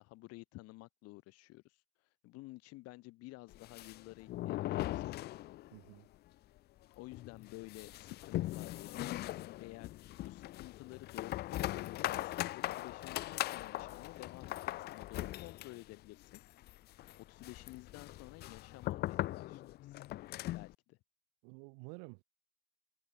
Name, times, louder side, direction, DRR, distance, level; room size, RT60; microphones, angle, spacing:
voice 1, 0.0-5.2 6.9-9.9 10.2-16.4 16.9-20.0 20.5-21.0, left 21 dB, 50° left, 2.5 m, -52 dB
sound 1, 3.5-5.9 6.1-6.2 6.6-6.7 7.1-20.7, left 16 dB, 30° left, 0.5 m, -40 dB
voice 2, 5.7-6.1 21.4-22.2, right 40 dB or more, 55° right, 3.6 m, -51 dB
hypercardioid pair, 85°, 33 cm